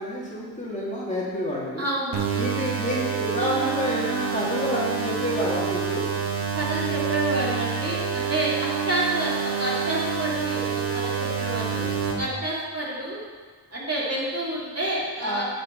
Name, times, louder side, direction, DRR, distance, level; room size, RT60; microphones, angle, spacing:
voice 1, 0.0-1.9 2.3-6.0 15.2-15.4, equal, 15° left, -6 dB, 2.5 m, -28 dB
voice 2, 1.8-2.2 6.5-13.2 13.7-15.4, right 1 dB, 35° right, -6 dB, 3.1 m, -29 dB
sound 1, 2.1-12.1, right 7 dB, 70° right, 1.8 m, -27 dB
9.4 x 6.3 x 5.3 m, 1.5 s
cardioid pair, 65°, 41 cm